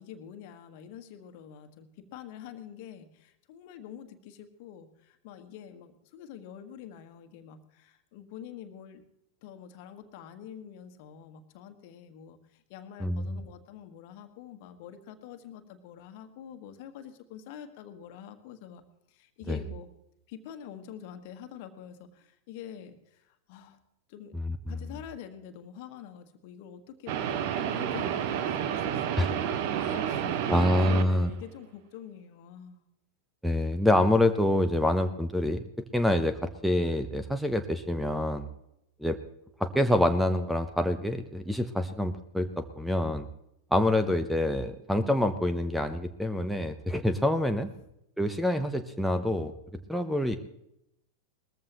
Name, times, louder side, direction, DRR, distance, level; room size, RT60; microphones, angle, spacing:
voice 1, 0.0-9.0 9.4-18.8 19.1-19.9 20.3-23.8 24.1-24.4 24.7-32.8, left 9 dB, 50° left, 8 dB, 1.5 m, -46 dB
voice 2, 13.0-13.4 19.5-19.6 24.3-24.7 29.2-29.3 30.5-31.3 33.4-35.6 35.9-38.5 39.0-39.2 39.6-43.3 43.7-47.7 48.2-49.5 49.9-50.4, left 1 dB, ahead, 9 dB, 0.9 m, -26 dB
sound 1, 27.1-31.3, right 9 dB, 45° right, 1.2 m, -30 dB
20.0 x 14.5 x 3.0 m, 0.81 s
figure-of-eight pair, 90°, 0 cm